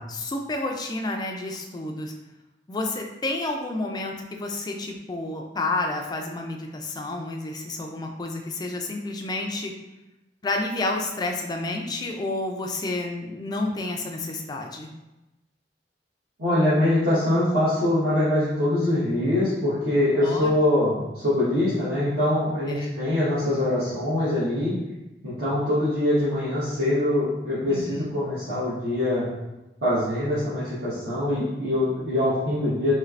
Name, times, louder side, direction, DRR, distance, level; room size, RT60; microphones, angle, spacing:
voice 1, 0.1-2.1 2.7-9.7 10.4-14.9 20.2-20.5 22.7-22.9 27.7-28.1, left 2 dB, 25° left, 2 dB, 0.3 m, -30 dB
voice 2, 16.4-24.7 25.2-29.3 29.8-33.0, left 1 dB, 65° right, -13 dB, 1.2 m, -23 dB
3.2 x 3.1 x 2.4 m, 1.0 s
head